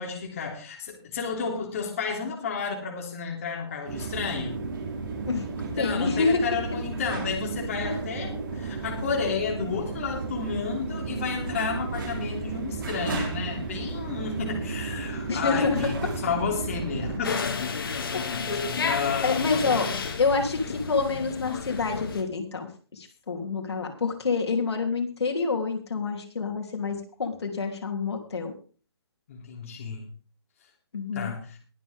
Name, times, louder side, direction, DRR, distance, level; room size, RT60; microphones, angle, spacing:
voice 1, 0.0-4.6 5.6-17.4 18.9-19.9 29.3-30.1 31.1-31.6, left 5 dB, 30° left, 0 dB, 3.1 m, -32 dB
sound 1, 3.8-17.2, right 4 dB, 50° right, 4.1 m, -33 dB
voice 2, 5.8-6.4 7.8-7.9 15.3-15.9 18.5-18.6 19.2-19.9 20.2-28.5 30.9-31.3, left 4 dB, 75° left, 2 dB, 3.4 m, -27 dB
sound 2, 17.2-22.2, left 5 dB, 55° left, 2.4 m, -31 dB
22.0 x 7.4 x 3.7 m, 0.39 s
hypercardioid pair, 175°, 14 cm